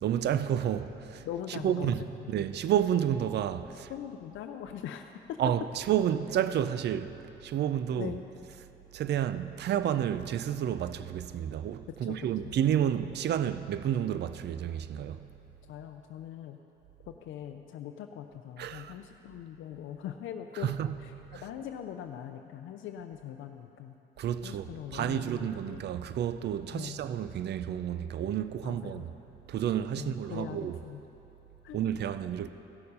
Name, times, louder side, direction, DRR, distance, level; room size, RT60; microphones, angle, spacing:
voice 1, 0.0-3.9 5.4-7.2 7.4-8.2 8.4-8.7 8.9-15.3 18.6-18.9 20.5-21.5 24.2-29.1 29.5-30.8 31.7-32.5, right 10 dB, 60° right, 0.5 m, -30 dB
voice 2, 1.2-2.3 3.9-5.4 8.0-8.2 11.9-12.5 15.6-16.6 17.1-20.7 21.0-24.0 24.4-25.8 26.7-27.0 28.6-29.1 29.9-31.0 31.6-31.8, left 10 dB, 80° left, 0.5 m, -41 dB
15.5 x 6.6 x 5.5 m
cardioid pair, 90°, 20 cm